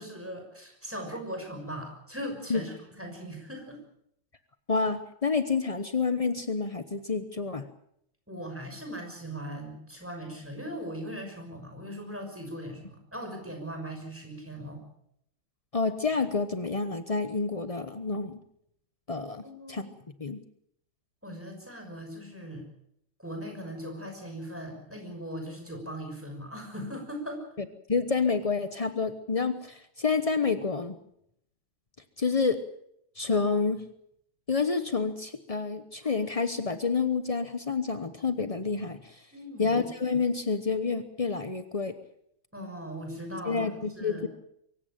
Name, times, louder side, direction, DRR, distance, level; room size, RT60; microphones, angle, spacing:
voice 1, 0.0-3.8 8.3-14.8 19.4-19.9 21.2-22.7 23.2-27.4 39.3-39.8 42.5-44.3, equal, 5° right, 3 dB, 6.1 m, -39 dB
voice 2, 4.7-7.6 15.7-18.4 19.1-19.9 20.2-20.4 27.9-31.0 32.2-32.6 33.2-33.8 34.5-39.2 39.6-41.9 43.5-44.3, left 4 dB, 45° left, 10 dB, 0.4 m, -28 dB
24.0 x 15.5 x 8.8 m, 0.74 s
omnidirectional pair, 2.3 m